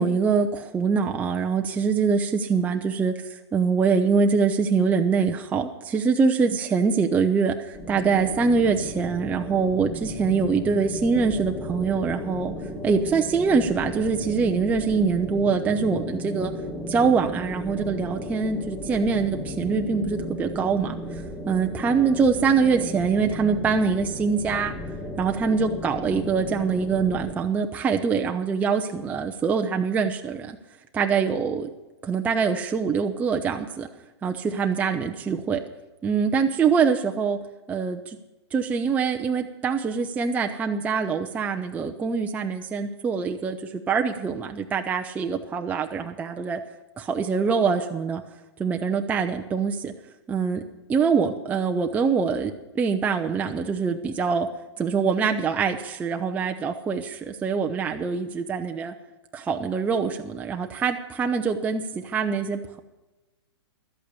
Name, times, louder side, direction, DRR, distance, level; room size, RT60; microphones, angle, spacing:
voice 1, 0.0-12.5 12.8-16.5 16.9-21.0 21.5-24.7 25.2-30.6 30.9-31.7 32.0-33.9 34.2-35.6 36.0-37.4 37.7-38.2 38.5-43.6 43.9-46.6 47.0-48.2 48.6-49.9 50.3-50.6 50.9-54.5 54.8-58.9 59.3-62.8, right 5 dB, 10° right, 4 dB, 0.5 m, -24 dB
sound 1, 7.7-27.3, left 1 dB, 10° left, 2.2 m, -35 dB
12.0 x 8.4 x 8.3 m, 1.1 s
hypercardioid pair, 140°, 15 cm